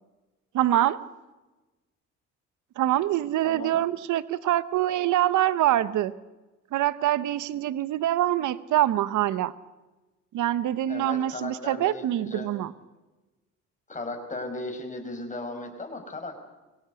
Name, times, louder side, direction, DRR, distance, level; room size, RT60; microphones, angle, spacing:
voice 1, 0.5-1.0 2.8-6.1 6.7-9.5 10.3-12.7, right 13 dB, 75° right, 16 dB, 1.0 m, -25 dB
voice 2, 3.4-3.8 10.9-12.5 13.9-16.4, left 2 dB, 25° left, 5 dB, 5.2 m, -36 dB
24.0 x 17.0 x 8.1 m, 1.1 s
cardioid pair, 90°, 30 cm